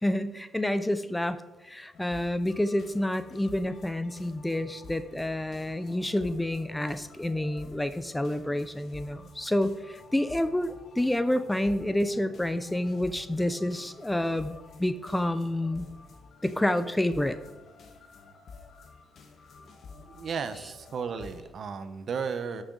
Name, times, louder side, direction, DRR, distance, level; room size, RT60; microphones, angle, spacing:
voice 1, 0.0-1.4 1.6-15.9 16.4-17.4, left 1 dB, 10° left, 12 dB, 0.6 m, -29 dB
sound 1, 1.9-21.4, left 4 dB, 60° left, 1.4 m, -50 dB
voice 2, 20.1-22.6, right 6 dB, 55° right, 10 dB, 0.9 m, -34 dB
12.5 x 6.4 x 4.0 m, 1.1 s
cardioid pair, 90°, 0 cm